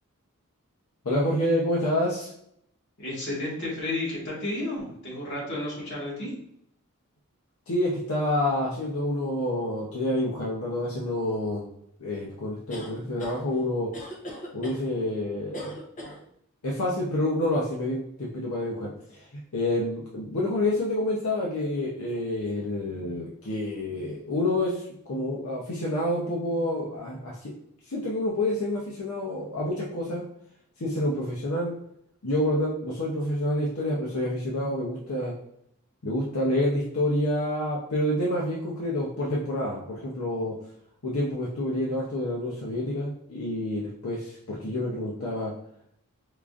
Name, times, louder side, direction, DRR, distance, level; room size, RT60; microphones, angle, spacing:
voice 1, 1.0-2.3 7.7-11.6 12.0-13.9 14.5-15.8 16.6-19.3 19.5-27.5 27.9-30.2 30.8-31.7 32.2-35.3 36.0-40.5 41.0-45.5, left 1 dB, 80° left, -4 dB, 0.7 m, -28 dB
voice 2, 3.0-6.3, left 2 dB, 50° left, -5 dB, 1.5 m, -32 dB
sound 1, 12.7-13.4 13.9-14.8 15.5-16.2, left 1 dB, 35° left, 0.7 m, -39 dB
4.7 x 2.5 x 2.4 m, 0.72 s
head